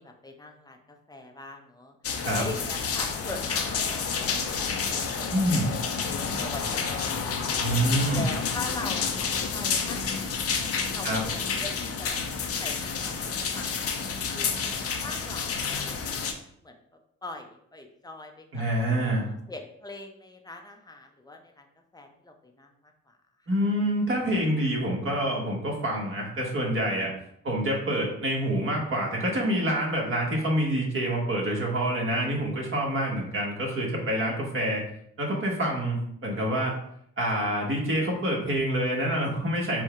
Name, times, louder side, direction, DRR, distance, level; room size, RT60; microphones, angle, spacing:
voice 1, 0.0-2.0 2.3-7.7 8.1-9.1 9.5-10.6 10.9-13.9 14.3-14.5 15.0-16.1 16.6-16.8 17.2-18.6 19.1-21.7 21.9-23.2, left 2 dB, 15° left, 3 dB, 0.7 m, -42 dB
sound 1, 2.0-16.3, left 5 dB, 50° left, 0.7 m, -29 dB
voice 2, 5.3-5.7 7.6-8.3 11.0-11.2 18.5-19.3 23.5-27.1 27.4-34.8 35.2-36.8 37.2-39.8, right 1 dB, 45° right, -2 dB, 1.5 m, -27 dB
4.6 x 2.3 x 4.5 m, 0.71 s
cardioid pair, 90°, 30 cm